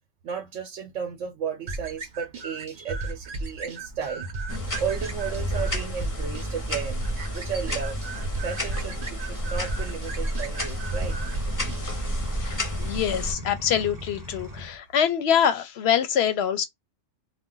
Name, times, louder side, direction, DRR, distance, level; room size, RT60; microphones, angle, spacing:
voice 1, 0.2-7.0 7.3-8.0 8.4-11.2, right 7 dB, 80° right, 1.0 m, -34 dB
sound 1, 1.7-11.8, right 3 dB, 50° right, 0.8 m, -36 dB
sound 2, 4.5-13.3, equal, 20° left, 0.6 m, -30 dB
sound 3, 10.0-14.8, left 1 dB, 20° right, 0.5 m, -40 dB
voice 2, 12.4-16.6, left 8 dB, 65° left, 0.8 m, -25 dB
2.5 x 2.1 x 3.7 m
omnidirectional pair, 1.3 m